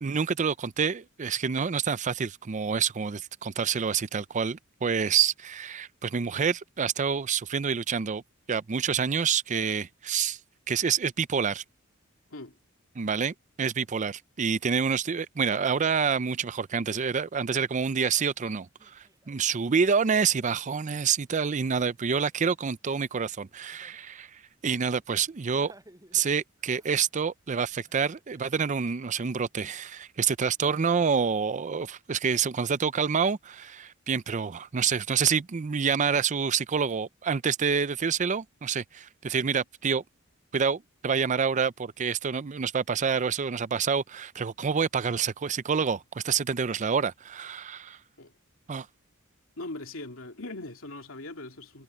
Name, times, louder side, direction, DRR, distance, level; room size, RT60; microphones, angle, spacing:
voice 1, 0.0-8.2 8.5-10.4 10.7-11.6 13.0-25.7 26.1-40.0 40.5-48.0 48.7-48.9, right 6 dB, 35° right, 0.5 m, -27 dB
Laughter, 18.2-24.0 24.3-24.4 24.7-24.9 25.3-26.3 26.6-27.4 27.8-29.3, right 1 dB, 15° right, 8.0 m, -61 dB
voice 2, 49.6-51.8, left 2 dB, 70° left, 3.0 m, -40 dB
head